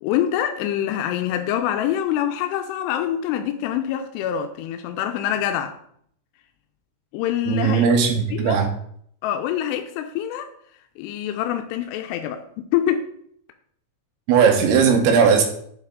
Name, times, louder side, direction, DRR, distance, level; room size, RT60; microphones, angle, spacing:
voice 1, 0.0-5.7 7.1-7.9 8.3-8.6 9.2-10.5 11.0-13.1, left 10 dB, 85° left, 6 dB, 2.7 m, -25 dB
voice 2, 7.5-8.7 14.3-15.4, right 6 dB, 75° right, 4 dB, 2.7 m, -17 dB
8.9 x 4.0 x 3.6 m, 0.66 s
omnidirectional pair, 4.8 m